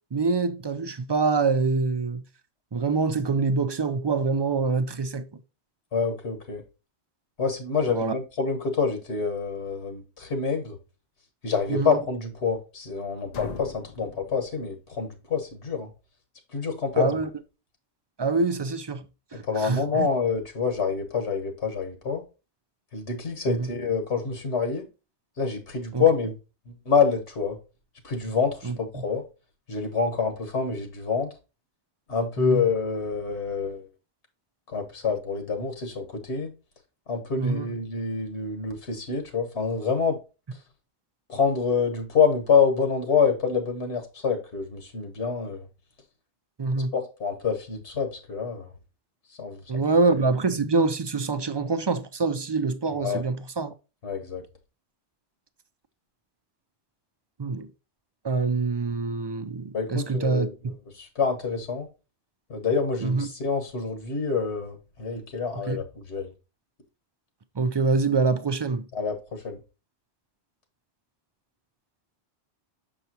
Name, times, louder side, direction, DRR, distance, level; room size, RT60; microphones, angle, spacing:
voice 1, 0.1-2.2 2.7-5.3 7.9-8.1 11.7-12.0 16.9-17.3 18.2-19.0 19.3-20.1 23.5-23.7 25.9-26.0 28.6-28.7 32.4-32.7 37.4-37.7 46.6-46.9 49.7-53.7 57.4-57.7 58.2-60.5 63.0-63.3 65.7-65.8 67.6-68.8, right 4 dB, 40° right, 0.3 m, -25 dB
voice 2, 5.9-6.6 7.4-10.8 11.4-15.9 16.5-17.2 19.3-22.2 22.9-24.8 25.4-26.3 26.8-27.6 28.0-29.2 29.7-31.3 32.1-33.8 34.7-36.5 37.1-40.2 41.3-45.6 46.9-48.7 49.4-49.6 53.0-53.2 54.0-54.4 59.7-60.5 60.9-61.9 62.5-66.3 68.9-69.6, left 5 dB, 75° left, 1.5 m, -27 dB
sound 1, 13.3-15.2, left 5 dB, 45° left, 0.6 m, -40 dB
6.8 x 4.8 x 2.9 m
omnidirectional pair, 1.1 m